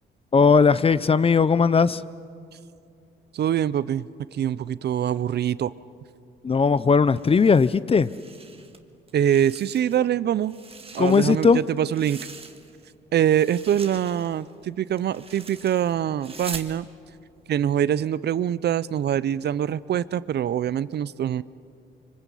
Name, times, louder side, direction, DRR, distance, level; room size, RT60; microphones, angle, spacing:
voice 1, 0.3-2.0 6.4-8.1 11.0-11.6, left 5 dB, 30° left, 0.6 m, -18 dB
voice 2, 3.3-5.7 9.1-10.5 10.9-12.3 13.1-16.9 17.5-21.4, right 10 dB, 55° right, 0.6 m, -24 dB
sound 1, 7.1-8.8 9.1-10.1 10.4-12.9 13.2-16.7, right 4 dB, 30° right, 1.7 m, -43 dB
25.0 x 24.5 x 8.4 m
cardioid pair, 90°, 20 cm